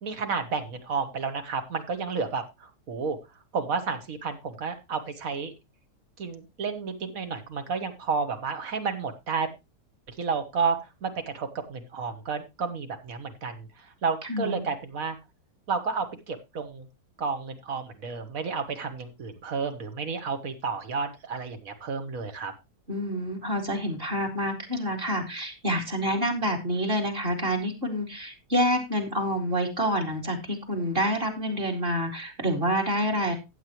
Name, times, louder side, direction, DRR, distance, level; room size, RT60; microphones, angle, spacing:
voice 1, 0.0-3.2 3.5-5.5 6.2-9.5 10.1-15.2 15.7-16.9 17.2-22.5, right 5 dB, 55° right, 9 dB, 1.6 m, -31 dB
voice 2, 14.2-14.6 22.9-33.3, equal, 35° right, 1 dB, 2.5 m, -27 dB
15.0 x 8.1 x 3.0 m, 0.24 s
omnidirectional pair, 1.8 m